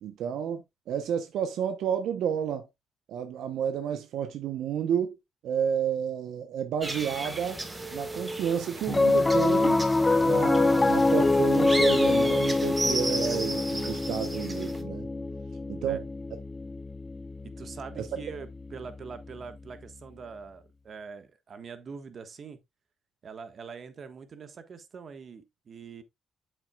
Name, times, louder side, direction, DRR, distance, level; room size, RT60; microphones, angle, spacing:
voice 1, 0.0-2.7 3.1-5.2 5.4-7.6 7.9-9.9 10.2-15.1 15.7-16.0 18.0-18.1, right 8 dB, 80° right, 0.8 m, -31 dB
sound 1, 6.8-14.8, right 2 dB, 20° right, 1.7 m, -35 dB
Piano, 8.9-19.4, left 2 dB, 20° left, 0.3 m, -25 dB
voice 2, 17.4-22.6 23.2-26.0, right 5 dB, 50° right, 1.4 m, -43 dB
8.1 x 7.4 x 2.3 m
cardioid pair, 90°, 0 cm